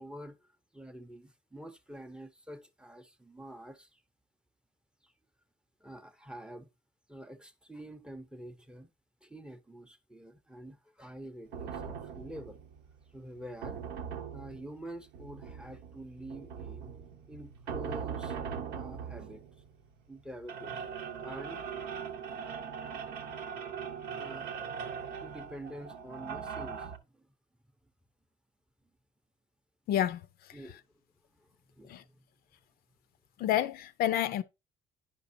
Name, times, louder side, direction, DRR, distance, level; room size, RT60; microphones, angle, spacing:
voice 1, 0.0-4.0 5.0-5.1 5.8-6.7 7.1-8.9 9.2-12.6 13.1-13.8 14.3-16.9 17.3-18.4 18.7-19.4 20.1-20.9 21.2-21.7 24.2-24.5 25.2-27.3 30.5-30.8 31.3-32.2, right 1 dB, 5° right, 0.6 m, -47 dB
sound 1, 11.5-27.0, right 7 dB, 85° right, 0.9 m, -41 dB
voice 2, 29.9-30.6 31.8-32.0 33.4-34.4, left 11 dB, 65° left, 0.5 m, -30 dB
9.9 x 5.2 x 2.7 m
cardioid pair, 110°, 17 cm